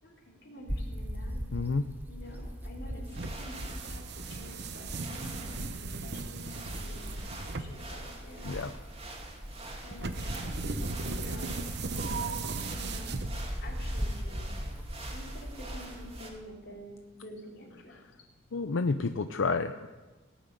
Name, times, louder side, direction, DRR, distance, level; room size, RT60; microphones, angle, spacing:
voice 1, 0.0-1.5 2.1-5.6 6.0-8.6 9.8-14.5 15.1-18.0, equal, 60° left, -2 dB, 4.0 m, -48 dB
sound 1, 0.7-16.3, equal, 10° right, 1.3 m, -39 dB
voice 2, 1.5-1.8 8.4-8.7 18.5-19.9, left 4 dB, 85° left, 9 dB, 0.6 m, -30 dB
sound 2, 2.3-2.4 3.0-16.3, right 2 dB, 30° right, 2.8 m, -47 dB
sound 3, 3.1-13.7, right 4 dB, 60° right, 0.9 m, -38 dB
18.5 x 7.3 x 9.2 m, 1.2 s
head